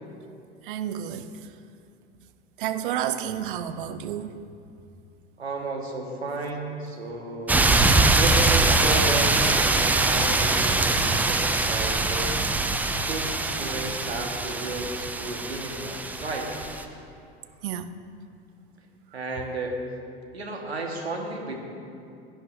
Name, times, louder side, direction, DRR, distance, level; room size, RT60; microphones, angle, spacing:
voice 1, 0.7-1.3 2.6-4.3 17.6-17.9, right 10 dB, 55° right, 11 dB, 0.7 m, -30 dB
voice 2, 5.4-7.7 8.2-12.3 12.9-16.5 19.1-19.7 20.3-21.5, right 2 dB, 80° right, 1 dB, 1.6 m, -33 dB
sound 1, 7.5-16.8, right 2 dB, 5° right, 0.4 m, -23 dB
16.5 x 10.0 x 2.7 m, 2.5 s
figure-of-eight pair, 80°, 32 cm